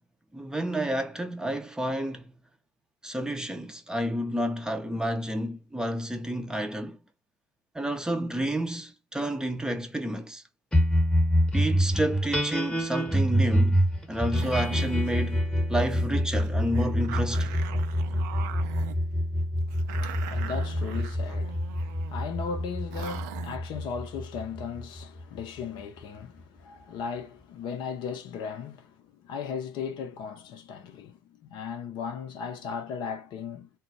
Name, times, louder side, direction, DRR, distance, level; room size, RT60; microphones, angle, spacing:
voice 1, 0.3-2.2 3.0-7.0 7.7-10.4 11.5-13.8 14.1-17.6, right 1 dB, 5° right, 0.5 m, -30 dB
sound 1, 10.7-25.4, equal, 10° left, 1.0 m, -26 dB
sound 2, 14.4-15.1 15.5-15.6 15.9-16.1 16.3-19.0 19.7-22.2 22.6-22.7 22.9-23.6, right 12 dB, 70° right, 0.4 m, -41 dB
voice 2, 19.7-33.7, left 6 dB, 55° left, 0.6 m, -37 dB
2.2 x 2.0 x 3.8 m
hypercardioid pair, 70°, 9 cm